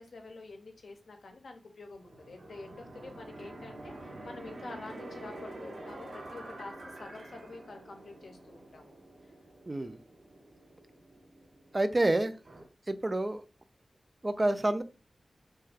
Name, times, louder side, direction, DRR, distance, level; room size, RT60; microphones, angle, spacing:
voice 1, 0.0-8.9, left 3 dB, 80° left, 4 dB, 0.6 m, -48 dB
sound 1, 2.0-12.7, right 1 dB, 70° right, 0.7 m, -47 dB
voice 2, 9.7-10.0 11.7-12.3 12.9-13.4 14.2-14.8, right 1 dB, 35° right, 11 dB, 0.3 m, -28 dB
2.4 x 2.3 x 3.3 m, 0.33 s
wide cardioid pair, 65°, 0 cm